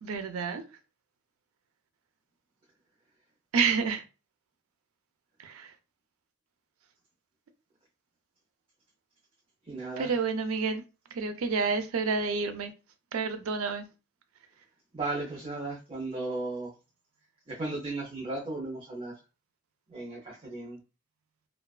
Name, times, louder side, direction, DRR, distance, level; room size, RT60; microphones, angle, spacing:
voice 1, 0.0-0.6 3.5-4.0 5.4-5.7 10.0-10.8 11.1-12.7 13.1-13.8, right 5 dB, 85° right, 0.4 m, -29 dB
voice 2, 9.7-10.1 14.9-16.7 17.5-19.1 19.9-20.8, right 2 dB, 25° right, 0.5 m, -35 dB
2.4 x 2.3 x 2.3 m
head